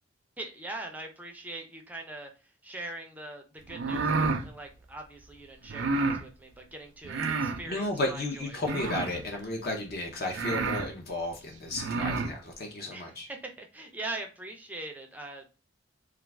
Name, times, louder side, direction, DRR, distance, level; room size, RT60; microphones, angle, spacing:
voice 1, 0.4-2.3 2.6-8.7 12.9-15.4, right 2 dB, 10° right, 3 dB, 0.4 m, -42 dB
sound 1, 3.7-4.4 5.7-6.2 7.0-7.6 8.6-9.2 9.9-10.0 10.3-10.9 11.7-12.3, right 3 dB, 65° right, 0.4 m, -29 dB
voice 2, 7.7-13.3, left 2 dB, 55° left, 2 dB, 0.6 m, -33 dB
2.3 x 2.3 x 3.2 m, 0.32 s
head